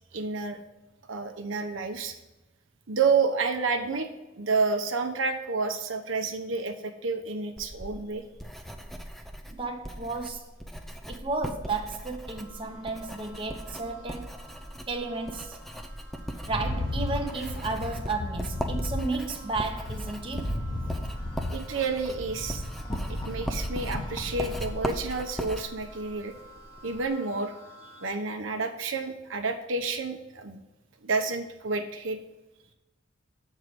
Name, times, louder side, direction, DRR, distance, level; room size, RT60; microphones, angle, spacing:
voice 1, 0.1-0.6 1.1-2.1 2.9-4.1 4.4-8.2 21.5-22.6 23.1-26.3 26.8-27.5 27.8-30.6 31.0-32.2, right 4 dB, 75° right, 0.8 m, -29 dB
Writing, 7.6-27.1, equal, ahead, 0.5 m, -39 dB
voice 2, 9.5-10.6 11.1-14.3 14.9-15.6 16.5-20.6, right 3 dB, 25° right, 0.9 m, -33 dB
sound 1, 12.2-28.1, right 1 dB, 55° left, 1.6 m, -52 dB
Rattle, 16.3-24.8, left 1 dB, 20° left, 1.0 m, -35 dB
7.6 x 4.6 x 5.1 m
head